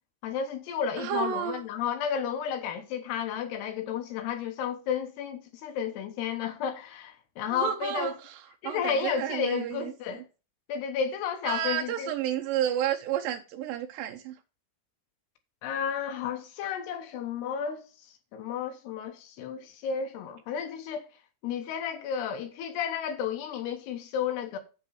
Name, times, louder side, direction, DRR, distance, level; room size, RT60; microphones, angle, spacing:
voice 1, 0.2-8.1 8.6-10.2 10.7-12.1 15.6-17.9 18.3-21.1 21.4-24.6, left 7 dB, 85° left, 3.2 m, -32 dB
voice 2, 1.0-1.6 7.5-9.9 11.4-14.4, right 10 dB, 75° right, 2.3 m, -31 dB
8.5 x 6.9 x 4.9 m
omnidirectional pair, 4.6 m